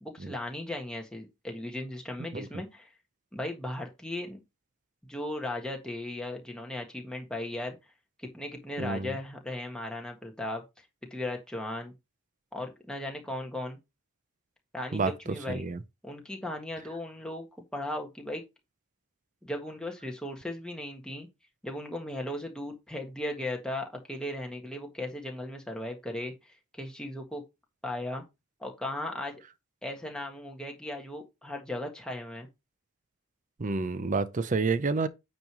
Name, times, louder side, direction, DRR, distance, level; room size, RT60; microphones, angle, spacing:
voice 1, 0.0-2.9 3.3-4.4 5.1-7.8 8.2-10.6 11.1-11.9 12.5-13.8 14.7-15.7 16.0-17.5 17.7-18.4 19.4-21.3 21.6-27.4 27.8-28.2 28.6-29.4 29.8-32.5, left 1 dB, 5° left, 1.4 m, -37 dB
voice 2, 8.8-9.1 14.9-15.1 15.5-15.8 33.6-35.1, right 4 dB, 35° right, 0.5 m, -29 dB
9.1 x 3.1 x 6.0 m
head